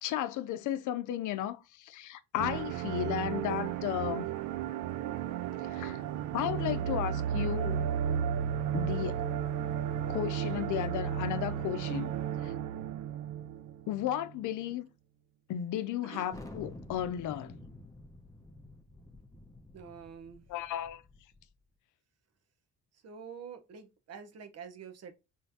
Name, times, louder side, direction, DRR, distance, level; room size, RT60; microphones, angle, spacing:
voice 1, 0.0-4.3 5.6-6.0 6.3-7.9 8.7-9.2 10.1-12.1 12.4-12.5 13.9-14.9 15.5-17.6 20.5-21.0, left 11 dB, 80° left, 0.6 m, -34 dB
sound 1, 2.4-14.3, right 9 dB, 80° right, 0.5 m, -34 dB
voice 2, 16.0-16.3 19.7-20.4 22.9-25.1, right 7 dB, 55° right, 1.0 m, -47 dB
Thunder, 16.3-21.5, left 1 dB, 10° left, 1.0 m, -49 dB
5.6 x 3.3 x 2.8 m
cardioid pair, 90°, 30 cm